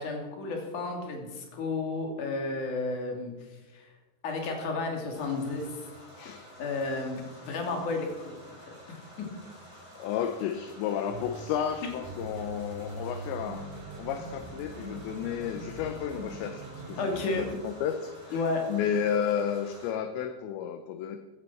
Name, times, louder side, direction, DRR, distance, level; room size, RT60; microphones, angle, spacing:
voice 1, 0.0-3.3 3.7-3.9 4.2-5.7 6.6-8.3 17.0-17.4 18.3-18.6, left 3 dB, 45° left, 2 dB, 3.6 m, -32 dB
sound 1, 5.1-19.9, left 1 dB, 10° right, 6.6 m, -51 dB
voice 2, 6.2-6.5 10.0-13.7 14.0-18.1 18.7-21.2, left 8 dB, 75° left, 8 dB, 2.8 m, -32 dB
sound 2, 11.1-17.6, right 2 dB, 45° right, 4.3 m, -42 dB
16.0 x 9.7 x 7.2 m, 1.2 s
omnidirectional pair, 5.7 m